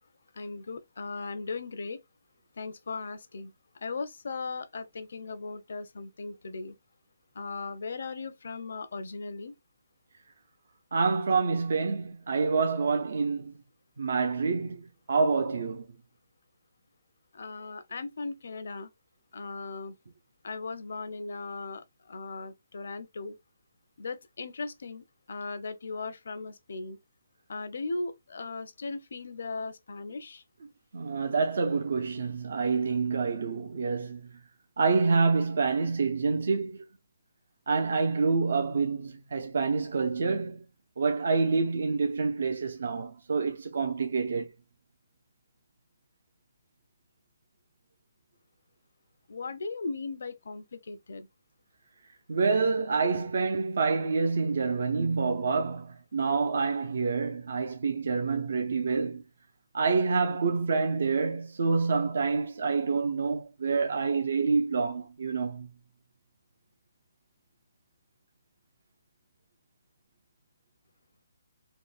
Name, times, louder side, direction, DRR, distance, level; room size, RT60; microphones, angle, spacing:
voice 1, 0.3-2.0 2.6-6.7 7.3-9.5 17.3-18.9 19.3-19.9 20.4-23.4 24.0-27.0 27.5-30.4 49.3-51.3, left 3 dB, 70° left, 0.6 m, -38 dB
voice 2, 10.9-13.5 14.0-15.8 30.9-34.2 34.8-36.8 37.7-40.6 41.0-44.5 52.3-59.2 59.7-65.7, right 4 dB, 65° right, 0.5 m, -27 dB
3.6 x 2.1 x 2.3 m
hypercardioid pair, 170°, 0 cm